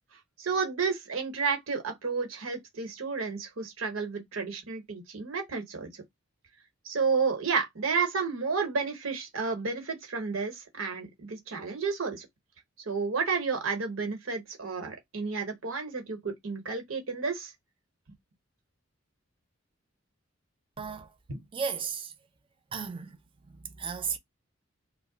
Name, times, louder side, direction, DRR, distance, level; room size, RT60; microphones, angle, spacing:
voice 1, 0.4-5.9 6.8-12.3 12.8-17.5 21.3-21.4, right 5 dB, 85° right, 1.0 m, -31 dB
voice 2, 20.8-21.2 21.5-22.1 22.7-24.2, right 6 dB, 25° right, 0.4 m, -35 dB
2.6 x 2.0 x 3.8 m
head